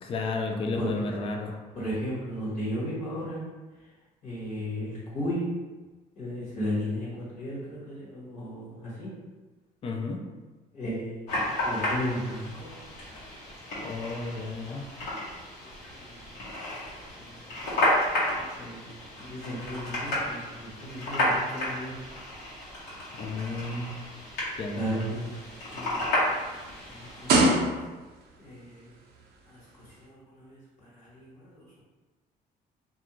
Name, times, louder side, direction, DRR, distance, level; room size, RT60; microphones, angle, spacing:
voice 1, 0.0-1.6 9.8-10.2 13.8-14.8 23.1-24.0 24.6-25.1, left 3 dB, 35° left, 2 dB, 0.4 m, -32 dB
voice 2, 0.7-1.1 1.7-3.4 3.8-3.9 4.2-5.5 6.1-7.1 7.3-9.1 10.7-11.3 11.6-12.7 15.6-16.4 17.2-18.9 19.2-21.9 24.7-25.3 25.7-26.6 26.9-27.8 28.4-28.9 29.4-31.8, equal, 50° left, -8 dB, 1.2 m, -35 dB
sound 1, 11.3-27.4, left 1 dB, 75° left, 1.1 m, -32 dB
sound 2, 25.1-28.2 29.1-29.2, right 2 dB, 70° right, 0.5 m, -26 dB
2.4 x 2.2 x 2.9 m, 1.2 s
cardioid pair, 110°, 17 cm